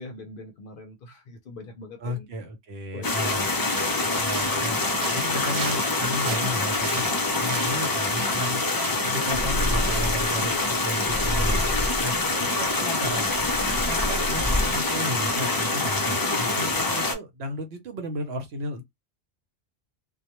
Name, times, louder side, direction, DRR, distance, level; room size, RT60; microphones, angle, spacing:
voice 1, 0.0-2.3 2.9-3.3 10.5-10.7 16.3-16.8, left 2 dB, 60° left, 0.7 m, -42 dB
voice 2, 2.0-3.5 4.0-4.8 5.1-7.1 7.4-8.6 9.0-12.2 12.5-13.3 13.7-18.8, equal, 70° right, 0.9 m, -34 dB
sound 1, 3.0-17.1, left 2 dB, 35° left, 0.3 m, -25 dB
sound 2, 3.6-4.7 5.0-8.5 8.8-9.1 9.3-9.4, right 5 dB, 55° right, 0.4 m, -37 dB
Purr, 9.3-10.4 11.0-12.1 12.8-14.9, left 1 dB, 20° right, 0.8 m, -28 dB
2.2 x 2.2 x 2.9 m
omnidirectional pair, 1.1 m